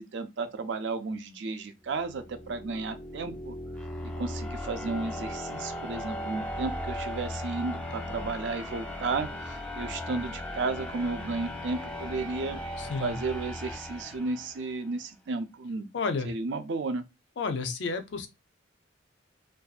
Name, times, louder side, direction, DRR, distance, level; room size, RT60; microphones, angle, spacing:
voice 1, 0.0-3.5 4.0-12.6 13.0-15.9 16.2-17.0, right 3 dB, 70° right, 0.4 m, -33 dB
sound 1, 1.9-14.8, left 1 dB, 5° left, 0.4 m, -37 dB
voice 2, 12.8-13.2 15.9-16.3 17.4-18.3, left 4 dB, 65° left, 0.4 m, -31 dB
2.6 x 2.2 x 2.3 m
head